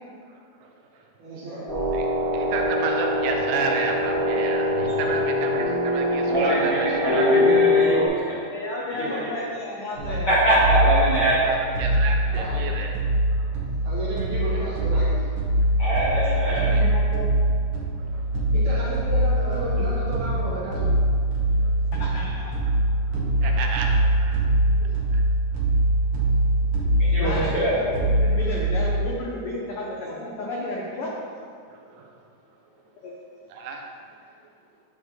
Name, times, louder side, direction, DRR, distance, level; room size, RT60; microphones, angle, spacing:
voice 1, 1.2-1.8 12.3-12.5 13.8-15.2 18.5-21.0 22.0-22.1, right 1 dB, 75° right, -8 dB, 3.2 m, -32 dB
sound 1, 1.7-8.1, left 1 dB, 30° right, 1.8 m, -23 dB
voice 2, 2.3-6.7 7.1-7.4 11.4-12.9 13.3-13.4 16.5-16.9 18.0-18.3 21.6-21.8 23.1-24.4 25.1-25.2 31.7-32.1 33.5-33.8, right 4 dB, 90° right, 2 dB, 2.1 m, -31 dB
voice 3, 6.3-8.4 9.0-9.5 10.3-11.9 15.8-16.7 27.0-27.8, right 1 dB, 55° left, -9 dB, 1.2 m, -23 dB
voice 4, 8.5-10.3 16.5-17.3 21.9-22.5 24.8-24.9 27.2-27.5 27.8-31.2 33.0-33.1, left 2 dB, 80° left, -3 dB, 1.3 m, -33 dB
sound 2, 10.0-29.0, right 1 dB, 55° right, 1.7 m, -23 dB
10.5 x 4.4 x 3.0 m, 2.2 s
omnidirectional pair, 3.4 m